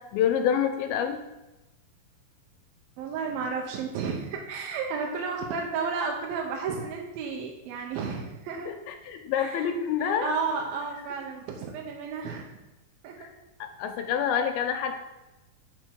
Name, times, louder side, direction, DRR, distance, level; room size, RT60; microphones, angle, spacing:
voice 1, 0.1-1.2 8.7-10.3 13.2-13.3 13.8-14.9, left 8 dB, 85° left, 5 dB, 2.6 m, -27 dB
voice 2, 3.0-8.7 9.4-9.7 10.0-12.5 13.0-13.2, right 5 dB, 80° right, 0 dB, 2.5 m, -32 dB
5.8 x 4.5 x 6.2 m, 0.99 s
omnidirectional pair, 4.2 m